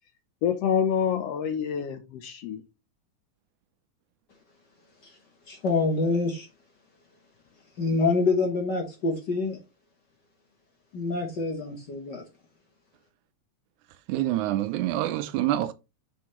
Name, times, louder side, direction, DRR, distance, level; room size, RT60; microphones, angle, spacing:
voice 1, 0.4-2.6, left 7 dB, 70° left, 1.6 m, -27 dB
voice 2, 5.5-6.5 7.8-9.6 10.9-12.2, left 3 dB, 55° left, 1.2 m, -26 dB
voice 3, 14.1-15.7, right 14 dB, 85° right, 2.1 m, -26 dB
6.1 x 5.5 x 3.1 m
omnidirectional pair, 3.4 m